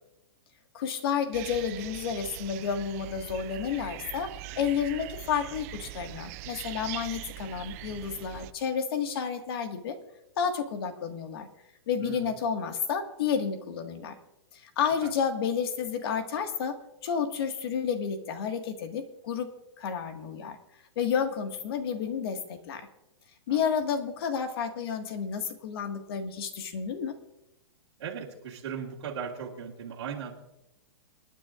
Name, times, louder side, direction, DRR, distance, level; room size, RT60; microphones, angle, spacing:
voice 1, 0.7-4.3 4.6-10.0 10.4-11.5 11.9-14.2 14.5-16.8 17.0-19.5 19.8-20.6 21.0-22.9 23.5-27.2, left 7 dB, 55° left, 6 dB, 1.8 m, -31 dB
sound 1, 1.3-8.5, right 17 dB, 35° right, 0.4 m, -42 dB
voice 2, 12.0-12.3 15.0-15.1 23.5-23.6 28.0-30.3, right 7 dB, 70° right, -4 dB, 2.1 m, -37 dB
28.0 x 9.8 x 2.5 m, 0.90 s
hypercardioid pair, 155°, 15 cm